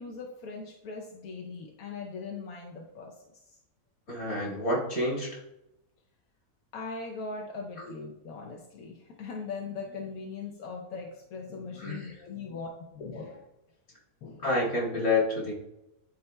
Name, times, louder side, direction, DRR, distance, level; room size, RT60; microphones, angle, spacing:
voice 1, 0.0-3.6 6.7-13.5 14.2-14.6, left 4 dB, 85° left, 0 dB, 1.2 m, -40 dB
voice 2, 4.1-5.4 7.8-7.9 11.8-12.1 14.4-15.5, left 2 dB, 55° left, -4 dB, 2.3 m, -28 dB
11.5 x 4.2 x 2.2 m, 0.89 s
omnidirectional pair, 1.5 m